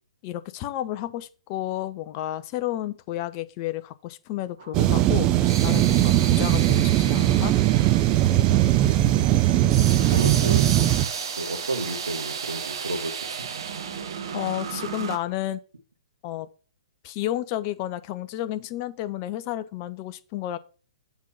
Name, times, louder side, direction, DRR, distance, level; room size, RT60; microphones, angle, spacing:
voice 1, 0.2-7.5 14.3-15.6 16.2-16.5 17.0-20.6, left 13 dB, 30° left, 0.5 m, -31 dB
sound 1, 4.6-15.2, right 6 dB, 50° right, 1.2 m, -34 dB
sound 2, 4.7-11.1, right 14 dB, 25° right, 0.4 m, -20 dB
voice 2, 10.1-10.7 11.4-13.5, right 2 dB, 70° right, 1.5 m, -32 dB
7.2 x 3.8 x 5.6 m
figure-of-eight pair, 120°, 3 cm